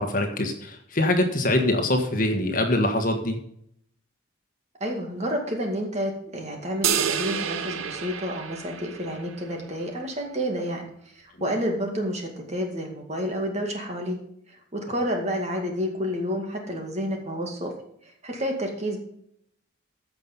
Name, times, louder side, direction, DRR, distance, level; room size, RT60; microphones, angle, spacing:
voice 1, 0.0-3.4, left 1 dB, 40° left, 4 dB, 1.5 m, -24 dB
voice 2, 4.8-10.9 11.2-14.2 14.7-17.7 18.2-19.0, equal, 35° right, 2 dB, 2.1 m, -29 dB
sound 1, 6.8-9.4, right 8 dB, 85° right, 0.8 m, -28 dB
14.5 x 6.0 x 5.5 m, 0.71 s
head